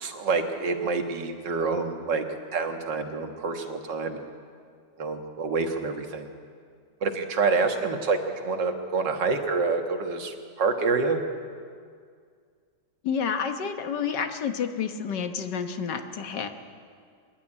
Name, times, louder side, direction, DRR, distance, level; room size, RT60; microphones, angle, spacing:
voice 1, 0.0-2.2 2.5-4.3 5.0-6.3 7.0-11.2, right 4 dB, 80° right, 5 dB, 2.1 m, -27 dB
voice 2, 13.0-16.5, left 7 dB, 75° left, 7 dB, 1.8 m, -29 dB
23.5 x 11.0 x 10.0 m, 2.1 s
omnidirectional pair, 1.9 m